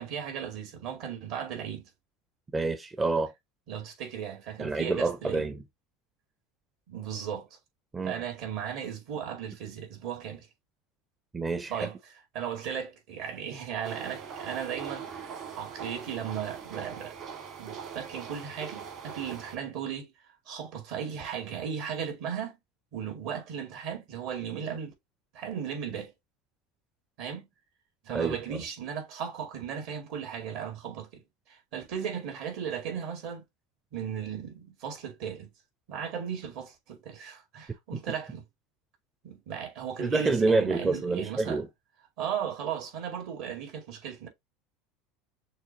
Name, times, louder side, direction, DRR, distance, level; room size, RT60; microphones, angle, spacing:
voice 1, 0.0-1.9 3.7-5.5 6.9-7.6 8.0-10.5 11.7-12.0 12.3-17.1 17.6-20.1 20.5-22.6 22.9-24.9 25.3-26.1 27.2-27.5 28.0-31.2 31.5-33.4 33.9-35.5 35.9-38.4 39.2-41.6 42.2-44.3, right 8 dB, 65° right, 2.1 m, -36 dB
voice 2, 2.5-3.3 4.6-5.6 7.9-8.2 11.3-11.9 28.1-28.6 37.9-38.0 40.0-41.7, right 3 dB, 15° right, 0.5 m, -28 dB
sound 1, 13.8-19.6, right 7 dB, 50° right, 2.0 m, -41 dB
6.4 x 2.3 x 2.8 m
supercardioid pair, 115°, 0 cm